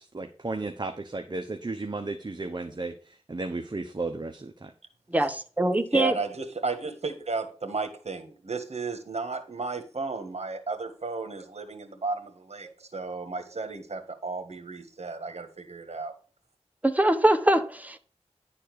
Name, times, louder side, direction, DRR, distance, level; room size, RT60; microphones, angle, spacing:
voice 1, 0.0-4.7, right 3 dB, 40° right, 0.9 m, -34 dB
voice 2, 5.1-6.1 12.6-12.7 16.8-18.0, right 1 dB, 15° right, 1.1 m, -23 dB
voice 3, 5.9-16.1, right 3 dB, 70° right, 1.7 m, -33 dB
10.5 x 4.3 x 6.8 m
wide cardioid pair, 60°, 11 cm